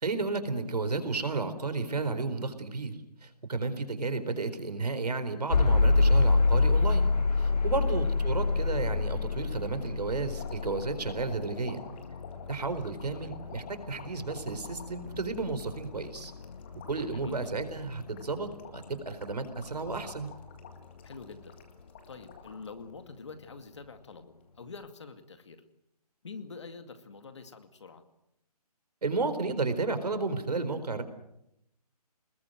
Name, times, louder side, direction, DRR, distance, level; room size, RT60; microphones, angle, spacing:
voice 1, 0.0-7.1 7.4-11.8 12.5-16.3 16.9-20.3 29.0-31.0, right 3 dB, 80° right, 10 dB, 4.3 m, -32 dB
sound 1, 5.5-21.4, left 3 dB, 80° left, 1.7 m, -29 dB
voice 2, 7.7-8.0 13.1-13.3 17.1-17.6 21.0-21.6 22.1-25.6 26.2-28.0, left 4 dB, 45° left, 8 dB, 2.2 m, -46 dB
sound 2, 10.3-22.7 23.1-23.9 24.9-25.0, left 7 dB, 15° left, 1.8 m, -50 dB
26.5 x 20.5 x 7.8 m, 0.82 s
hypercardioid pair, 180°, 20 cm